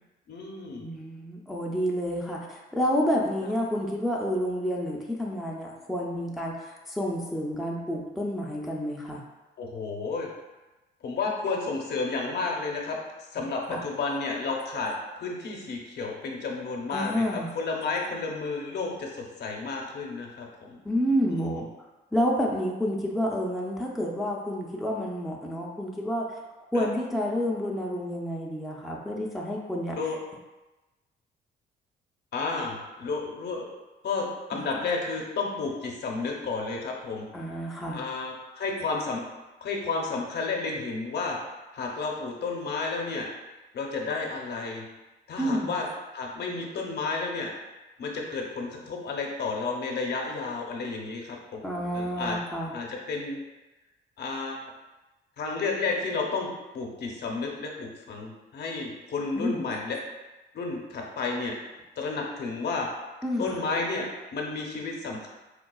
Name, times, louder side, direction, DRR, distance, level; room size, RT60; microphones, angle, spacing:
voice 1, 0.3-0.9 9.6-10.3 11.0-13.0 13.3-20.8 21.3-21.6 26.7-26.9 30.0-30.2 32.3-33.7 34.0-37.3 37.9-39.2 39.6-41.4 41.7-43.3 43.7-44.8 45.3-45.8 46.1-47.5 48.0-51.6 51.9-52.4 52.7-53.4 54.2-54.6 55.4-60.0 60.5-61.5 62.0-62.9 63.4-65.3, left 4 dB, 55° left, 0 dB, 0.7 m, -32 dB
voice 2, 0.8-9.2 13.7-13.8 16.9-17.5 20.8-21.7 22.1-26.3 26.7-30.0 37.3-38.0 45.4-45.8 51.6-52.7 59.4-59.6 63.2-63.6, equal, ahead, -3 dB, 0.5 m, -29 dB
4.4 x 2.3 x 2.3 m, 1.1 s
cardioid pair, 90°, 20 cm